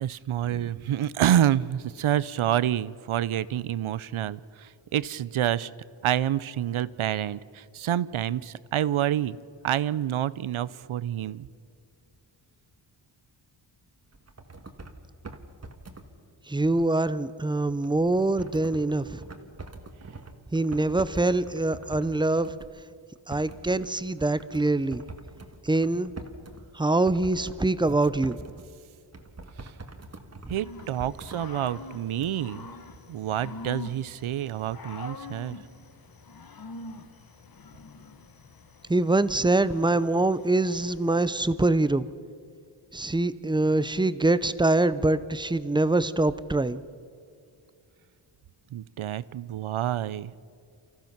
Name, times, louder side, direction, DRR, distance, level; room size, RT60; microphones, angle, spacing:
voice 1, 0.0-5.7 6.0-9.4 9.6-11.5 29.6-29.7 30.5-32.7 33.1-35.6 48.7-50.3, right 11 dB, 90° right, 19 dB, 0.7 m, -28 dB
sound 1, 14.1-15.0 15.2-16.1 17.8-22.1 22.4-22.7 23.2-26.7 27.1-28.7 29.1-31.8 32.2-32.4, right 3 dB, 30° right, 1.5 m, -44 dB
voice 2, 16.5-19.2 20.5-22.5 23.3-25.0 25.6-26.1 26.7-28.4 38.9-42.1 42.9-46.8, right 2 dB, 10° right, 15 dB, 0.5 m, -24 dB
Growling / Cricket, 30.5-41.5, left 3 dB, 45° left, 1.2 m, -45 dB
29.5 x 15.5 x 6.0 m, 2.3 s
wide cardioid pair, 165°, 48 cm